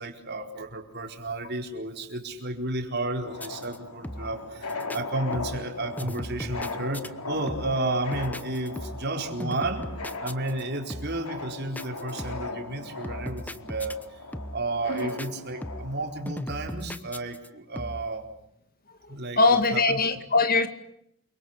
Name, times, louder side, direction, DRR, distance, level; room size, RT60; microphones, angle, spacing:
voice 1, 0.0-9.9 10.2-14.0 14.5-18.3 19.1-20.0, right 2 dB, 50° right, 4 dB, 4.6 m, -32 dB
sound 1, 3.2-16.2, left 3 dB, 85° left, 4.1 m, -39 dB
sound 2, 3.4-3.8 4.0-4.4 4.7-5.0 5.3-5.7 6.0-7.1 7.5-7.9 8.1-9.1 9.4-10.6 10.9-11.3 11.8-12.6 13.0-14.1 14.3-14.7 15.0-15.3 15.6-16.0 16.3-17.5 17.8-18.1, equal, 5° left, 1.0 m, -37 dB
voice 2, 19.4-20.7, left 3 dB, 40° left, 10 dB, 2.1 m, -21 dB
29.0 x 24.5 x 8.1 m, 0.73 s
head